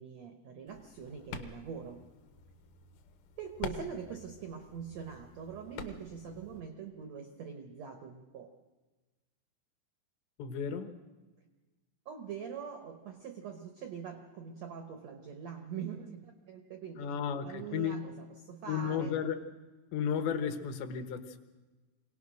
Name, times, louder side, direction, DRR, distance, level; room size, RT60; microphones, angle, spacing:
voice 1, 0.0-2.0 3.4-8.5 12.0-19.2, right 7 dB, 90° right, 6 dB, 1.5 m, -43 dB
sound 1, 0.7-6.6, left 6 dB, 65° left, 2.1 m, -47 dB
voice 2, 10.4-11.0 17.0-18.0 18.7-19.4 19.9-21.4, left 7 dB, 85° left, 8 dB, 3.4 m, -33 dB
23.5 x 18.0 x 6.3 m, 1.2 s
omnidirectional pair, 4.8 m